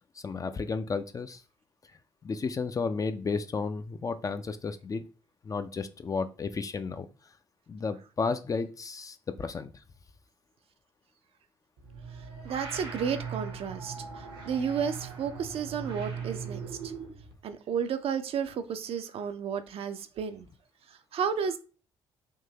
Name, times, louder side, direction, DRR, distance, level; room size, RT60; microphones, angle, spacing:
voice 1, 0.2-1.4 2.2-5.0 5.4-7.1 7.7-9.7, left 4 dB, 25° left, 0.4 m, -32 dB
sound 1, 11.8-17.3, right 5 dB, 70° right, 0.9 m, -40 dB
voice 2, 12.4-16.9 17.4-20.5 20.9-21.6, right 7 dB, 45° right, 0.4 m, -32 dB
3.6 x 2.6 x 2.8 m
figure-of-eight pair, 45°, 13 cm